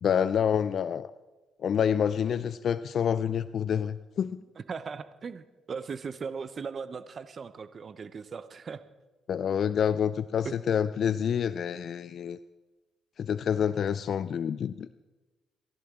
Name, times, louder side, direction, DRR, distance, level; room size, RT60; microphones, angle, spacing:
voice 1, 0.0-1.1 1.6-4.4 9.3-12.4 13.2-14.9, left 8 dB, 60° left, 14 dB, 0.4 m, -27 dB
voice 2, 4.6-8.8 10.4-10.5, right 5 dB, 45° right, 12 dB, 0.8 m, -38 dB
29.5 x 11.5 x 3.8 m, 1.2 s
cardioid pair, 90°, 0 cm